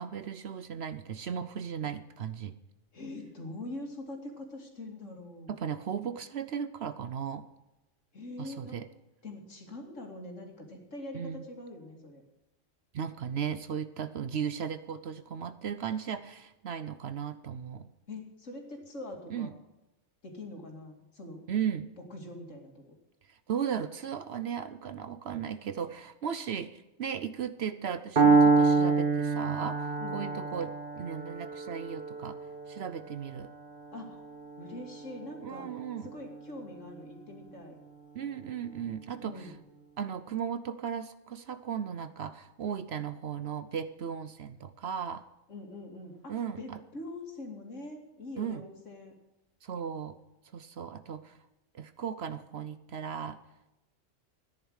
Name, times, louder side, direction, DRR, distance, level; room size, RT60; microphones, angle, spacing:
voice 1, 0.0-2.6 5.5-7.5 8.4-8.9 11.1-11.5 12.9-17.9 19.3-19.5 21.5-21.9 23.3-32.4 32.7-33.5 35.4-36.1 38.1-39.5 40.0-45.3 46.3-46.8 48.4-48.6 49.6-50.2 50.5-51.4 51.7-53.4, right 8 dB, 60° right, 12 dB, 0.8 m, -36 dB
voice 2, 2.9-5.6 8.1-8.8 9.2-12.2 18.1-19.5 20.2-21.4 22.0-23.0 30.0-30.4 33.9-34.2 34.6-35.7 36.0-37.8 39.2-39.6 45.5-49.1, left 2 dB, 70° left, 2 dB, 2.9 m, -43 dB
Piano, 28.2-36.1, right 4 dB, 40° right, 1.7 m, -27 dB
13.5 x 10.5 x 6.4 m, 0.95 s
omnidirectional pair, 1.4 m